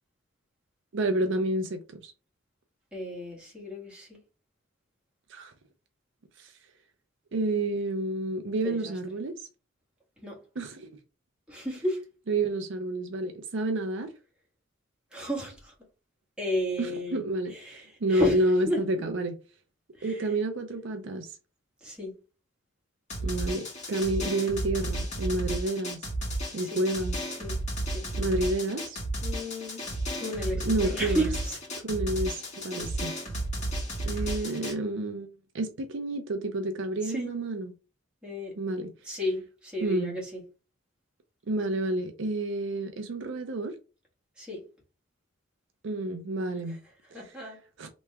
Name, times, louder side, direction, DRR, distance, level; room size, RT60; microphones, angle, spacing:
voice 1, 0.9-2.1 5.3-5.5 6.4-6.5 7.3-9.4 10.6-10.9 12.3-14.1 16.8-19.4 20.0-21.4 23.2-26.1 26.5-27.2 28.2-29.0 30.6-31.3 31.8-33.1 34.0-35.3 35.5-37.7 38.6-38.9 39.8-40.2 41.5-43.7 45.8-46.8 47.1-47.3 47.8-47.9, right 2 dB, 65° right, 0.5 m, -29 dB
voice 2, 2.9-4.2 8.6-8.9 10.2-10.4 11.5-12.0 15.1-15.7 16.4-17.2 17.5-19.1 19.9-20.3 21.8-22.1 26.5-26.8 27.3-27.6 27.8-28.0 29.2-29.9 30.2-31.6 37.0-37.4 38.2-38.5 39.0-40.4 44.4-44.7 46.7-46.8 47.1-47.6, equal, 5° right, 1.8 m, -33 dB
Drum, 23.1-34.7, right 1 dB, 35° left, 2.0 m, -33 dB
3.3 x 3.1 x 3.4 m
head